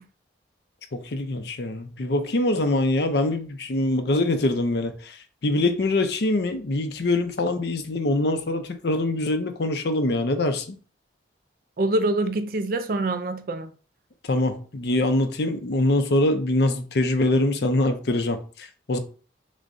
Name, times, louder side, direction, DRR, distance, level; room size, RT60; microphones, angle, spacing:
voice 1, 0.9-10.8 14.3-19.0, left 2 dB, 60° left, 0.6 m, -24 dB
voice 2, 11.8-13.7, right 2 dB, 50° right, 0.4 m, -25 dB
6.2 x 2.2 x 2.6 m
head